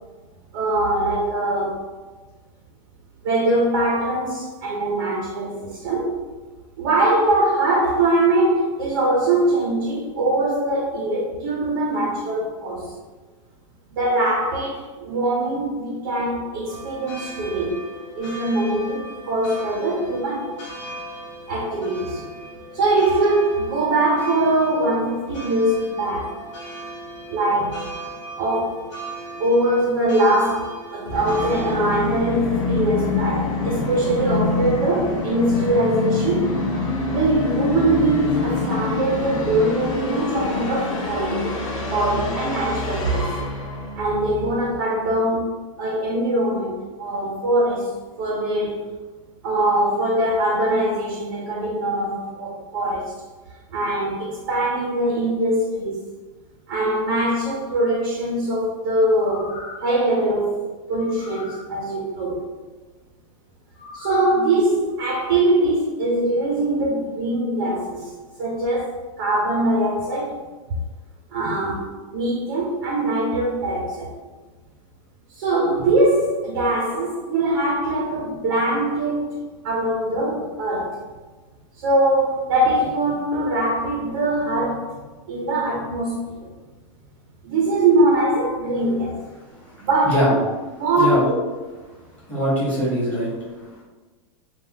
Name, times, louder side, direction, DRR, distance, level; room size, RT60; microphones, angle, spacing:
voice 1, 0.5-1.8 3.2-6.2 6.8-12.9 13.9-17.8 18.1-20.6 21.5-22.2 22.7-26.3 27.3-27.9 28.4-28.8 29.4-36.5 37.1-41.5 41.9-43.3 44.0-45.5 45.8-46.7 47.0-48.8 49.4-53.1 53.7-56.0 56.7-60.6 60.9-62.4 63.9-68.1 68.4-68.9 69.2-70.4 71.3-74.1 75.3-79.4 79.6-81.0 81.8-84.9 85.3-86.5 87.4-89.2 89.8-90.2 90.8-91.3, right 1 dB, 40° right, 0.5 m, -22 dB
sound 1, 16.7-31.7, right 2 dB, 60° left, 1.1 m, -38 dB
Musical instrument, 31.1-44.8, left 2 dB, 75° left, 0.8 m, -26 dB
sound 2, 59.2-60.0 61.0-61.7 63.8-64.4 64.9-65.0, left 3 dB, 35° left, 0.4 m, -39 dB
voice 2, 89.5-90.4 91.0-91.3 92.3-93.8, equal, 10° left, 0.9 m, -23 dB
3.3 x 2.1 x 2.7 m
supercardioid pair, 170°, 17 cm